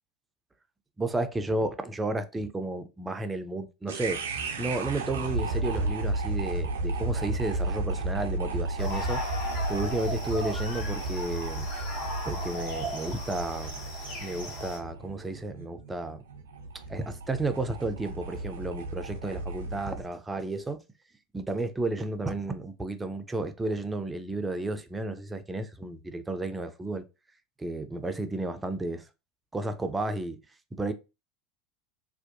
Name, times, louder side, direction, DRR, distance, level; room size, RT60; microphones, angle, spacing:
voice 1, 1.0-4.2 4.6-9.2 9.7-11.7 12.2-13.8 14.2-16.2 16.9-20.8 21.3-27.0 27.6-29.1 29.5-30.4 30.7-30.9, right 2 dB, 15° right, 0.4 m, -32 dB
sound 1, 3.9-20.1, right 2 dB, 75° right, 0.5 m, -33 dB
sound 2, 8.8-14.8, equal, 60° left, 0.9 m, -37 dB
2.6 x 2.2 x 2.5 m
figure-of-eight pair, 75°, 0 cm